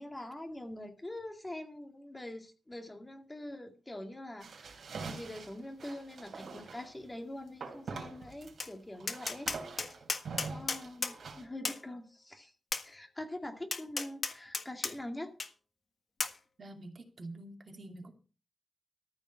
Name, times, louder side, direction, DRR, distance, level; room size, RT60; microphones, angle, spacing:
voice 1, 0.0-9.5 9.9-10.0 10.5-12.5 12.8-15.3, left 1 dB, 15° left, 4 dB, 2.2 m, -44 dB
sound 1, 4.4-6.9 7.6-8.7 8.9-11.4, right 4 dB, 80° right, 3.5 m, -44 dB
Tap, 8.6-8.7 9.1-11.2 11.6-11.8 12.7-12.9 13.7-14.9 15.4-15.5 16.2-16.4, left 4 dB, 45° left, 1.5 m, -34 dB
voice 2, 16.6-18.1, right 2 dB, 50° right, 4 dB, 2.5 m, -46 dB
14.0 x 5.4 x 8.7 m, 0.36 s
wide cardioid pair, 125°, 0 cm